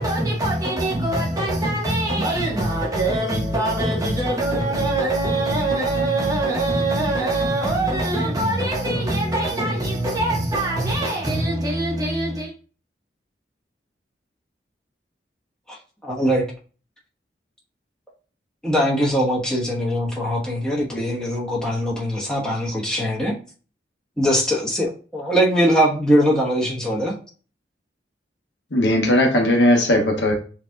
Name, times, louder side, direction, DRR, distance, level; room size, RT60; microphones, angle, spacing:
voice 1, 0.0-12.5, right 1 dB, 20° right, 1.3 m, -23 dB
voice 2, 16.0-16.4 18.6-23.4 24.2-27.1, equal, 5° left, 1.1 m, -21 dB
voice 3, 28.7-30.3, left 1 dB, 80° left, 1.0 m, -17 dB
6.9 x 2.8 x 2.3 m
head